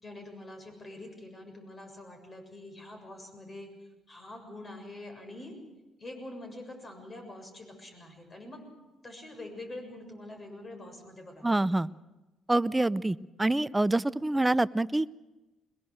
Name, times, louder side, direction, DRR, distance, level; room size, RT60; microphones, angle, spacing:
voice 1, 0.0-3.7 4.1-5.6 6.0-8.6 9.0-11.8, left 1 dB, 35° left, 5 dB, 7.0 m, -45 dB
voice 2, 11.4-11.9 12.5-15.1, right 2 dB, 15° right, 18 dB, 0.7 m, -26 dB
23.0 x 21.5 x 6.5 m, 1.1 s
hypercardioid pair, 50°, 0 cm